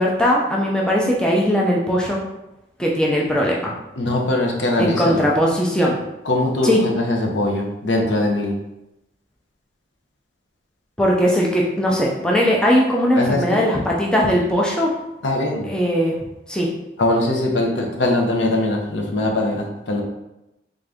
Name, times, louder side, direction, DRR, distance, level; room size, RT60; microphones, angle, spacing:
voice 1, 0.0-2.2 2.8-3.7 4.8-6.0 6.6-6.8 11.0-14.9 15.6-16.1 16.5-16.7, equal, 5° left, -3 dB, 0.4 m, -19 dB
voice 2, 4.0-5.2 6.2-8.5 13.2-13.6 15.2-15.7 17.0-20.0, left 1 dB, 80° left, 1 dB, 0.7 m, -21 dB
3.6 x 2.5 x 3.4 m, 0.91 s
head